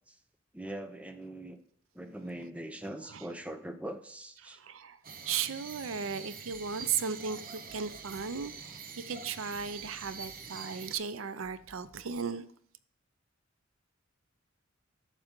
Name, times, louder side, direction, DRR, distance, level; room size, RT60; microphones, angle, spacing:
voice 1, 0.5-1.6 1.9-4.6, right 1 dB, 5° right, 0.6 m, -42 dB
voice 2, 4.4-5.0 5.3-12.5, right 6 dB, 90° right, 0.5 m, -36 dB
sound 1, 5.0-11.0, right 5 dB, 45° right, 0.8 m, -45 dB
sound 2, 6.5-12.2, left 1 dB, 40° left, 0.8 m, -63 dB
9.1 x 6.6 x 3.7 m
head